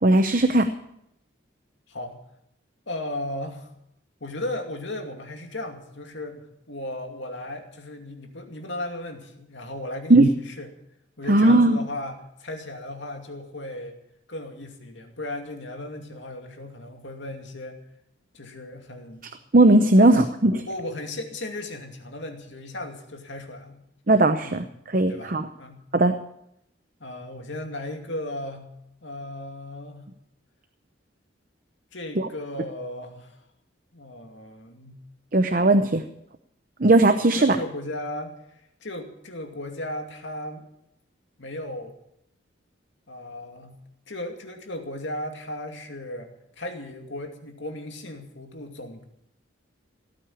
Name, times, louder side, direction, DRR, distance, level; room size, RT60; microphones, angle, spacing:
voice 1, 0.0-0.7 10.1-10.3 11.3-11.8 19.5-20.6 24.1-24.6 24.9-25.5 25.9-26.1 32.2-32.3 35.3-36.0 36.8-37.6, right 2 dB, 45° right, 8 dB, 0.8 m, -17 dB
voice 2, 1.9-2.2 2.9-3.7 4.2-10.7 11.2-14.0 14.3-17.8 18.3-19.3 19.9-20.2 20.7-23.8 24.4-24.7 25.1-25.8 27.0-28.7 29.0-30.1 31.9-33.5 33.9-35.0 37.3-40.6 41.4-42.0 43.1-43.8 44.1-49.0, left 1 dB, 70° left, 4 dB, 2.4 m, -36 dB
17.5 x 9.0 x 8.6 m, 0.77 s
head